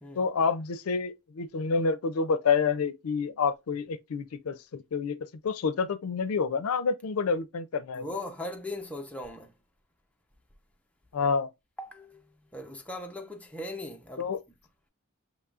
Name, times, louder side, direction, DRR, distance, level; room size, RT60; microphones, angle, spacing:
voice 1, 0.2-5.2 5.4-8.0 11.1-11.5 14.2-14.4, left 5 dB, 90° left, 0.5 m, -28 dB
voice 2, 7.9-9.5 11.8-14.4, left 1 dB, 5° left, 0.6 m, -39 dB
6.7 x 3.0 x 2.4 m
head